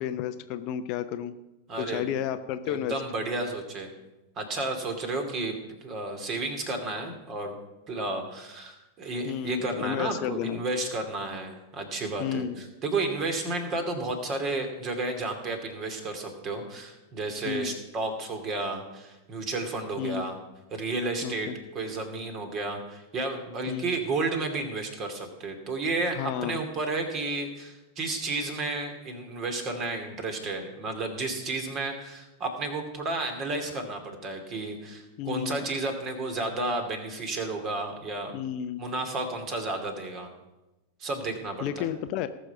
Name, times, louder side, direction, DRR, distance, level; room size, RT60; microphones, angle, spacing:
voice 1, 0.0-1.3 1.8-3.0 9.2-10.6 12.2-12.6 17.4-17.7 20.0-20.2 21.2-21.5 23.7-23.9 26.2-26.6 35.2-35.7 38.3-38.8 41.6-42.3, left 10 dB, 40° left, 10 dB, 0.7 m, -32 dB
voice 2, 1.7-2.1 2.7-3.9 4.4-5.5 5.8-7.5 7.9-20.4 20.7-38.3 38.8-40.3 41.0-41.9, right 2 dB, 30° right, 5 dB, 2.6 m, -32 dB
19.0 x 6.4 x 5.6 m, 1.0 s
figure-of-eight pair, 90°, 0 cm